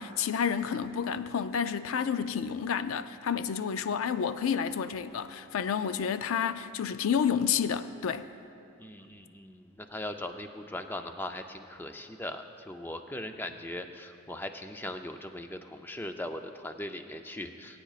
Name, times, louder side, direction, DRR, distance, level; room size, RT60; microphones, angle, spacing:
voice 1, 0.0-8.3, left 7 dB, 70° left, 0.4 m, -30 dB
voice 2, 8.8-17.8, left 1 dB, 10° left, 0.4 m, -39 dB
21.0 x 8.9 x 2.4 m
head